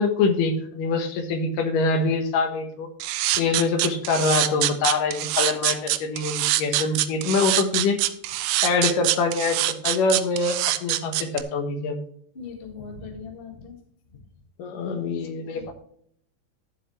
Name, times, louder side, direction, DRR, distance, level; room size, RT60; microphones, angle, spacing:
voice 1, 0.0-2.9 3.4-8.0 8.6-12.0 14.6-15.7, left 4 dB, 70° left, 6 dB, 2.7 m, -24 dB
sound 1, 3.0-11.4, right 15 dB, 80° right, 2.0 m, -24 dB
voice 2, 12.3-13.8 14.1-14.2 15.5-15.7, left 5 dB, 35° left, 3 dB, 0.8 m, -39 dB
12.0 x 7.6 x 3.1 m, 0.65 s
omnidirectional pair, 4.2 m